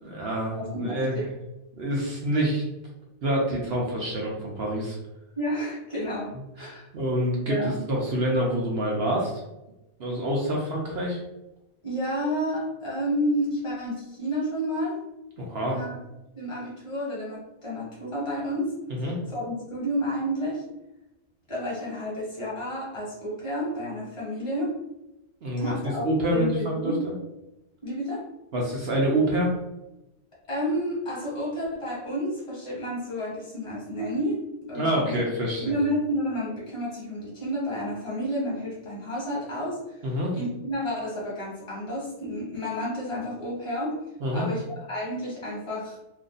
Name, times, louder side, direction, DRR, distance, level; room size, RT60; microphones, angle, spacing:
voice 1, 0.0-1.2 1.8-2.6 3.2-5.0 6.6-9.3 10.0-11.2 15.4-15.8 18.9-19.2 25.4-25.7 26.0-27.1 28.5-29.5 34.7-35.8 40.0-40.4 44.2-44.4, right 1 dB, 55° right, -2 dB, 0.7 m, -27 dB
voice 2, 0.5-1.3 5.3-6.3 6.6-6.9 7.4-7.8 11.8-15.0 15.7-16.0 16.3-18.8 19.3-20.6 21.5-24.7 25.6-26.0 26.3-27.1 27.8-28.2 30.5-35.3 35.6-40.1 40.3-44.0 44.3-46.0, equal, 25° left, -5 dB, 1.2 m, -30 dB
2.6 x 2.5 x 3.8 m, 0.94 s
omnidirectional pair, 1.5 m